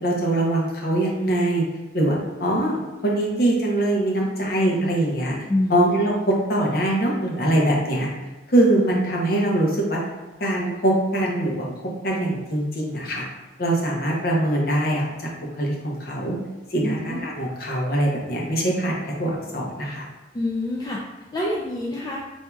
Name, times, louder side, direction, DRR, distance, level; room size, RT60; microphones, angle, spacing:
voice 1, 0.0-1.6 1.9-5.3 5.7-8.1 8.5-10.0 10.4-11.6 12.0-13.2 13.6-15.3 15.6-16.4 16.7-20.0, right 1 dB, 55° left, -2 dB, 0.8 m, -22 dB
voice 2, 5.5-5.8 16.8-17.2 20.3-21.0 21.3-22.2, left 1 dB, 20° left, -4 dB, 0.3 m, -26 dB
4.4 x 2.7 x 2.3 m, 1.1 s
head